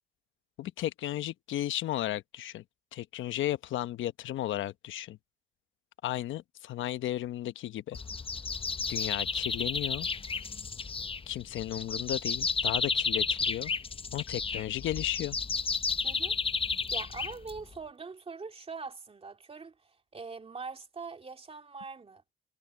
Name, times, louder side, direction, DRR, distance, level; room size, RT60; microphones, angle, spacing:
voice 1, 0.6-2.6 2.9-5.2 6.0-8.0 8.9-10.1 11.3-13.7 14.1-15.4, left 13 dB, 75° left, 1.0 m, -34 dB
sound 1, 7.9-17.8, left 5 dB, 25° left, 0.8 m, -32 dB
voice 2, 16.0-16.4 16.7-22.3, right 4 dB, 30° right, 2.4 m, -43 dB
cardioid pair, 90°, 20 cm